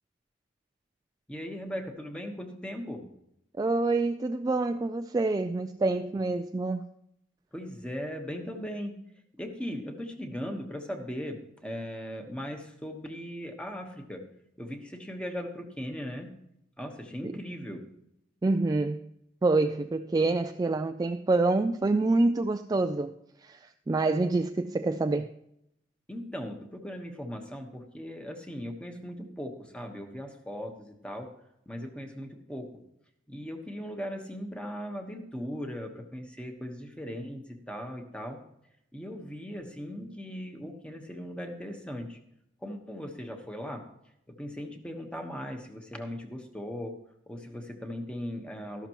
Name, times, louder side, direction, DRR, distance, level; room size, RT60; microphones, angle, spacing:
voice 1, 1.3-3.1 7.5-9.0 9.3-14.2 14.6-16.3 16.8-17.9 26.1-31.3 31.7-32.8 33.3-38.4 38.9-42.2 42.6-43.8 44.3-46.9 47.3-48.9, equal, 5° left, 1.2 m, -38 dB
voice 2, 3.6-6.8 17.2-17.3 18.4-19.1 19.4-23.1 23.4-25.3, right 3 dB, 20° right, 0.3 m, -27 dB
13.0 x 12.0 x 3.0 m
head